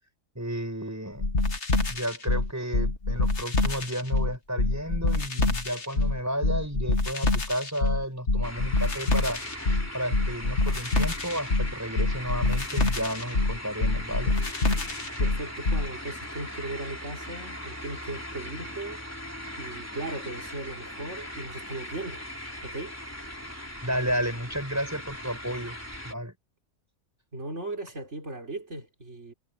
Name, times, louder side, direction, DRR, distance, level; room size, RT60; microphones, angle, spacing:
voice 1, 0.3-1.3 1.9-9.4 9.9-14.4 23.8-25.8 26.0-26.3, equal, 15° right, 6.7 m, -32 dB
sound 1, 1.2-15.9, left 2 dB, 75° left, 2.5 m, -26 dB
sound 2, 8.4-26.1, equal, 10° left, 3.6 m, -39 dB
voice 2, 15.2-19.0 19.6-22.2 22.6-23.0 27.3-29.3, right 2 dB, 80° right, 4.1 m, -37 dB
omnidirectional pair, 1.2 m